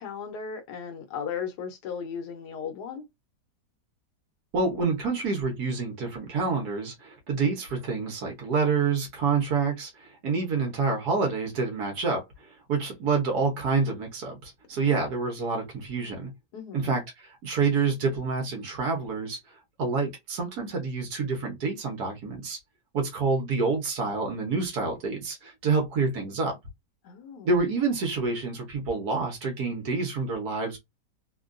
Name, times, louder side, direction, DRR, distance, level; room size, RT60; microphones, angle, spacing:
voice 1, 0.0-3.0 14.7-15.1 16.5-16.9 27.0-27.5, left 7 dB, 75° left, 1.3 m, -36 dB
voice 2, 4.5-12.2 12.7-16.3 16.7-19.4 19.8-22.6 22.9-26.6 27.4-30.8, right 4 dB, 65° right, 1.5 m, -27 dB
3.6 x 2.2 x 2.5 m
omnidirectional pair, 1.8 m